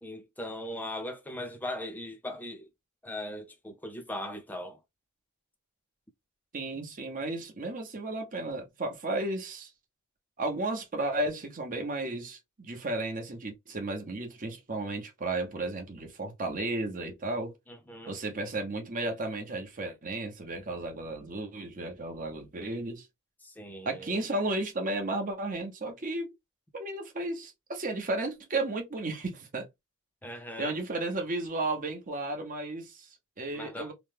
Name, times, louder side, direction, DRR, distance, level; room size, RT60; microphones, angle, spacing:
voice 1, 0.0-2.7 3.0-4.8 17.7-18.2 23.4-24.2 30.2-30.8 33.5-33.9, left 1 dB, 10° left, 0.5 m, -39 dB
voice 2, 6.5-9.7 10.4-17.5 18.1-23.1 23.8-26.3 26.7-29.7 30.6-33.9, right 2 dB, 35° right, 0.9 m, -34 dB
3.0 x 2.2 x 3.4 m
head